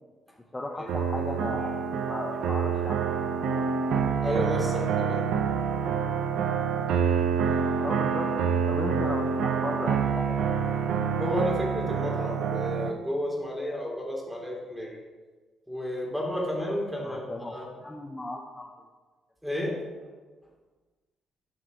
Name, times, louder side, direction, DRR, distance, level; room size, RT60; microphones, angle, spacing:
voice 1, 0.5-3.1 3.5-3.7 7.8-8.3 8.7-10.5 17.0-18.7, left 2 dB, 15° left, 0 dB, 0.9 m, -36 dB
sound 1, 0.9-12.9, right 6 dB, 80° right, 0.7 m, -27 dB
voice 2, 4.2-5.2 11.1-15.0 15.7-17.7 19.4-19.8, left 1 dB, 5° right, -3 dB, 3.1 m, -31 dB
12.5 x 6.0 x 3.9 m, 1.4 s
cardioid pair, 90°, 0 cm